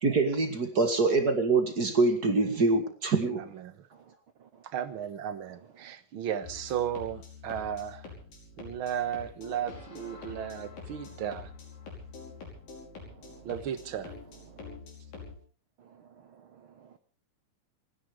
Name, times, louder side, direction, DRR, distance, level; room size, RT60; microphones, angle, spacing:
voice 1, 0.0-3.5, right 3 dB, 35° right, 7 dB, 1.8 m, -25 dB
voice 2, 3.5-3.9 4.6-8.1 8.6-11.5 13.4-14.1, right 9 dB, 65° right, 11 dB, 1.3 m, -35 dB
sound 1, 6.4-15.4, left 4 dB, 75° left, 7.0 m, -46 dB
voice 3, 13.0-13.5 14.5-14.7 15.8-17.0, right 8 dB, 85° right, 9 dB, 1.1 m, -57 dB
28.5 x 10.5 x 4.9 m, 0.39 s
omnidirectional pair, 4.0 m